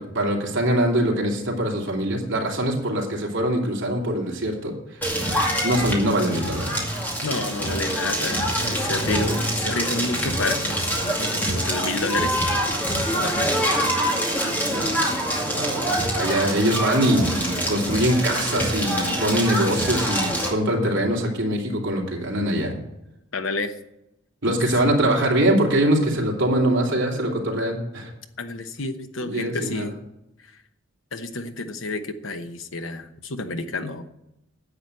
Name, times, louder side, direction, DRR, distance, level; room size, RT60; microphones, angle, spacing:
voice 1, 0.0-4.7 5.6-6.9 14.7-15.1 15.5-15.9 16.1-22.7 24.4-28.1 29.2-29.9, right 1 dB, 65° right, -1 dB, 3.0 m, -23 dB
Crackle, 5.0-20.5, equal, 10° left, 2.3 m, -25 dB
voice 2, 7.2-12.6 13.2-13.6 23.3-23.7 24.8-24.9 28.4-29.9 31.1-34.1, left 3 dB, 75° left, 8 dB, 1.1 m, -30 dB
9.9 x 8.1 x 7.6 m, 0.87 s
head